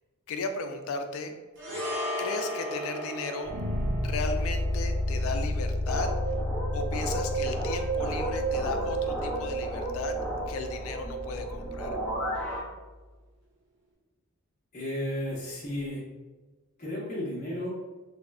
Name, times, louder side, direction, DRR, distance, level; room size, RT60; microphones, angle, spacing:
voice 1, 0.3-1.3 2.2-3.5 4.0-6.1 6.7-10.2 10.5-12.0, left 4 dB, 70° left, 6 dB, 0.3 m, -35 dB
sound 1, 1.6-10.0 10.3-10.5, equal, 60° right, 0.8 m, -39 dB
sound 2, 3.5-12.5, left 1 dB, 85° right, 0.5 m, -32 dB
sound 3, 5.9-12.6, right 3 dB, 5° left, 0.5 m, -32 dB
voice 2, 14.7-16.0 16.8-17.7, left 1 dB, 35° left, -6 dB, 0.7 m, -33 dB
3.6 x 2.0 x 2.3 m, 1.2 s
head